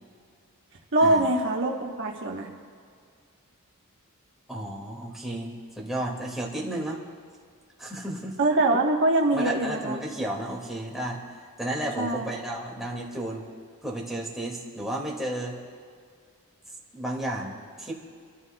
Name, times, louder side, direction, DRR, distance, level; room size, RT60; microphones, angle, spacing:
voice 1, 0.9-2.5 8.4-10.0 12.0-12.3, right 2 dB, 55° right, 0 dB, 1.2 m, -23 dB
voice 2, 4.5-7.0 7.8-8.4 9.3-13.5 13.8-15.6 16.9-17.9, right 1 dB, ahead, -3 dB, 2.1 m, -33 dB
28.5 x 14.0 x 2.3 m, 2.1 s
head